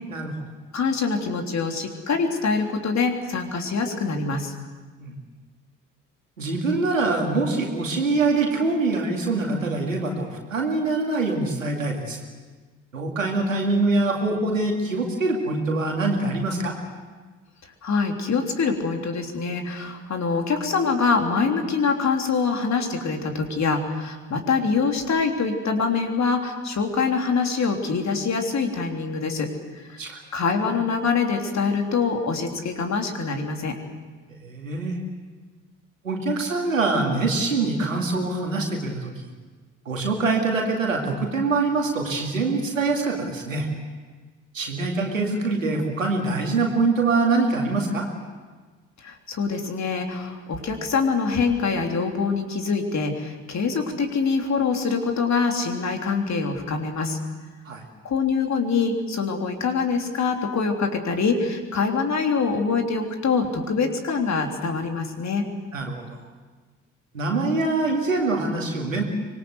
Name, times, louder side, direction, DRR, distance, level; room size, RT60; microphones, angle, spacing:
voice 1, 0.7-4.5 17.8-29.5 29.8-30.0 30.3-33.8 49.0-57.2 58.0-65.5, left 4 dB, 45° left, 4 dB, 3.3 m, -24 dB
voice 2, 6.4-12.2 12.9-16.7 30.0-30.2 34.4-35.0 36.0-39.1 39.9-43.7 44.5-48.1 57.7-57.8 65.7-66.2 67.1-69.0, right 3 dB, 90° right, 1 dB, 2.4 m, -24 dB
25.0 x 20.5 x 8.0 m, 1.4 s
figure-of-eight pair, 45°, 38 cm